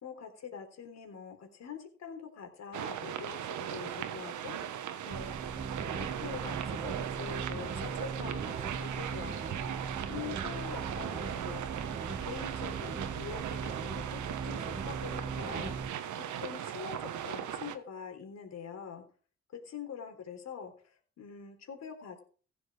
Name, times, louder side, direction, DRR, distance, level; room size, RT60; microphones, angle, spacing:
voice 1, 0.0-4.6 5.0-5.3 5.9-9.6 10.1-11.6 12.1-15.9 16.4-19.0 19.5-22.2, left 7 dB, 60° left, 5 dB, 3.7 m, -44 dB
sound 1, 2.7-17.8, right 10 dB, 75° right, 1.3 m, -38 dB
sound 2, 5.1-15.9, right 5 dB, 25° right, 1.1 m, -39 dB
15.0 x 7.8 x 5.0 m, 0.41 s
cardioid pair, 90°, 30 cm